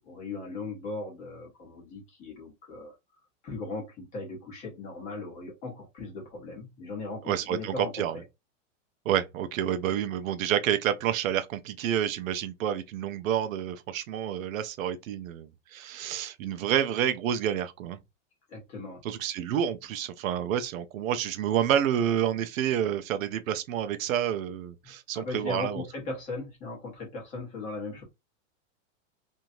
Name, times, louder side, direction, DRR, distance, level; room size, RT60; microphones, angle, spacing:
voice 1, 0.0-2.9 3.4-8.2 18.5-19.0 24.8-28.0, left 3 dB, 20° left, 1.0 m, -38 dB
voice 2, 7.3-8.2 9.1-18.0 19.0-25.8, right 10 dB, 85° right, 0.6 m, -29 dB
3.0 x 2.7 x 2.6 m
supercardioid pair, 175°, 39 cm